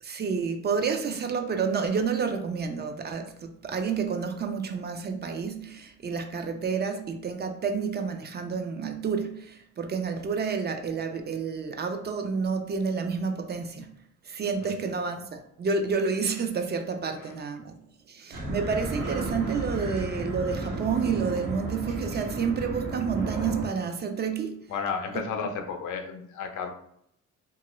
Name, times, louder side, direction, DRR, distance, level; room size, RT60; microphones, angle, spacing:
voice 1, 0.0-13.9 14.2-17.8 18.1-24.6, right 5 dB, 35° right, 6 dB, 0.4 m, -29 dB
sound 1, 18.3-23.7, right 2 dB, 85° right, 1.0 m, -33 dB
voice 2, 24.7-26.7, left 6 dB, 75° left, 5 dB, 0.6 m, -33 dB
2.9 x 2.4 x 3.0 m, 0.73 s
cardioid pair, 90°, 30 cm